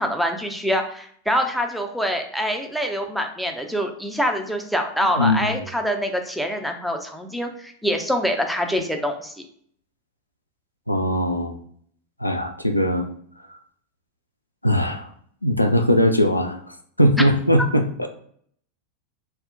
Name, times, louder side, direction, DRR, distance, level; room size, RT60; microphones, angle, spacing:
voice 1, 0.0-9.3, equal, ahead, 4 dB, 0.4 m, -25 dB
voice 2, 5.2-5.5 10.9-11.6 12.2-13.1 14.6-15.1 15.4-16.6 17.0-18.1, equal, 90° left, 5 dB, 0.3 m, -20 dB
2.3 x 2.0 x 3.7 m, 0.63 s
figure-of-eight pair, 90°, 0 cm